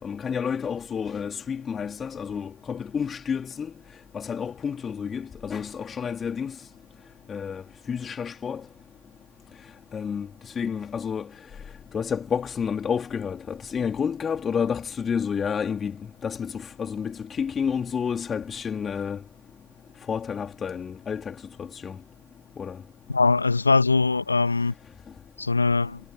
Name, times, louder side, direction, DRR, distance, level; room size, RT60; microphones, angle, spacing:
voice 1, 0.0-3.7 4.1-6.6 7.3-8.6 9.9-10.3 10.6-11.3 11.9-16.0 16.2-19.2 20.1-22.0 22.6-22.8, left 7 dB, 5° left, 2.5 m, -30 dB
voice 2, 23.1-24.7 25.4-26.0, left 4 dB, 50° left, 1.6 m, -21 dB
figure-of-eight pair, 155°, 0 cm